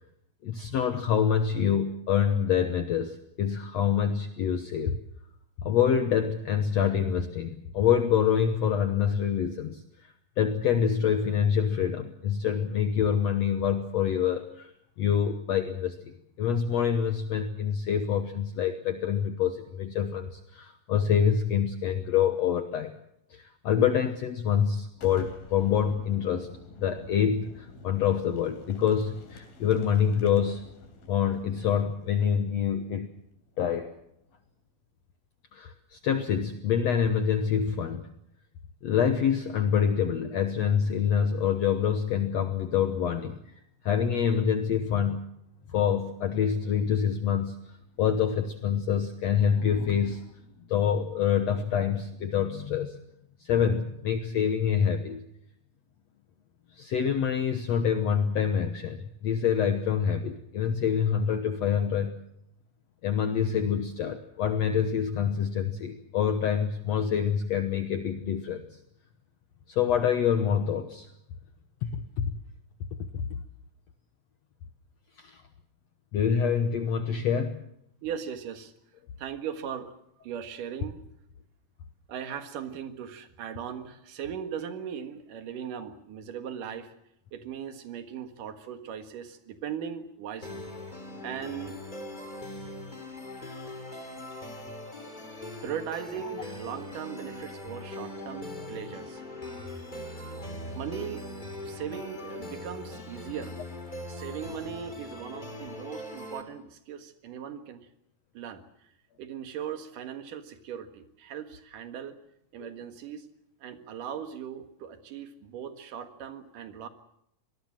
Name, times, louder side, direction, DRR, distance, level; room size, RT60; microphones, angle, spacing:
voice 1, 0.4-5.0 5.6-14.7 15.0-22.9 23.3-26.5 26.8-30.6 31.1-33.1 33.6-33.9 35.5-38.1 38.8-43.4 43.8-45.3 45.7-47.6 48.0-50.2 50.7-52.9 53.4-55.2 56.7-62.1 63.0-68.6 69.7-71.1 71.8-72.3 75.2-75.4 76.1-77.6 112.6-112.7, left 8 dB, 65° left, 8 dB, 1.9 m, -26 dB
Boom, 24.9-34.5, left 3 dB, 90° left, 5.2 m, -49 dB
voice 2, 78.0-78.7 79.2-79.9 80.2-81.0 82.1-86.9 87.3-90.7 91.2-91.8 95.6-99.2 99.6-100.4 100.7-101.3 101.6-103.6 104.1-107.9 108.3-108.6 109.2-112.2 112.5-113.3 113.6-116.9, right 8 dB, 65° right, 8 dB, 3.1 m, -38 dB
sound 1, 90.4-106.4, left 1 dB, 15° left, 2.7 m, -41 dB
25.5 x 19.5 x 7.6 m, 0.76 s
omnidirectional pair, 4.1 m